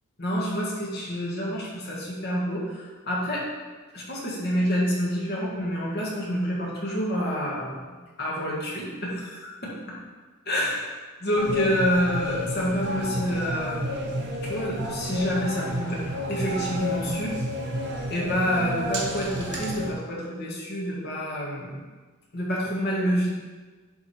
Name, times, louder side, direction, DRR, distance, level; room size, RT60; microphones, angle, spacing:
voice 1, 0.2-3.5 3.9-10.0 10.5-16.0 16.3-17.3 18.1-21.8 22.3-23.3, equal, 50° left, -5 dB, 1.8 m, -28 dB
sound 1, 11.3-19.9, equal, 50° right, 0.9 m, -31 dB
10.5 x 3.5 x 4.4 m, 1.4 s
head